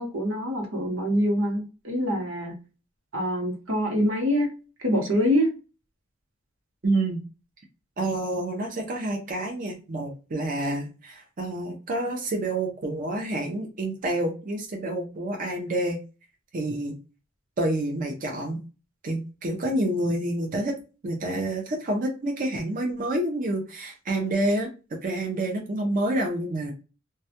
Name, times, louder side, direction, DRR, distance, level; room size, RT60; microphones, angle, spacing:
voice 1, 0.0-2.6 3.1-4.5 4.8-5.5, equal, 90° right, 0 dB, 0.9 m, -25 dB
voice 2, 6.8-7.2 8.0-16.0 16.5-17.0 17.6-18.6 19.0-20.7 21.0-24.7 25.0-26.7, right 1 dB, 45° right, 1 dB, 0.5 m, -28 dB
2.2 x 2.1 x 2.7 m, 0.32 s
head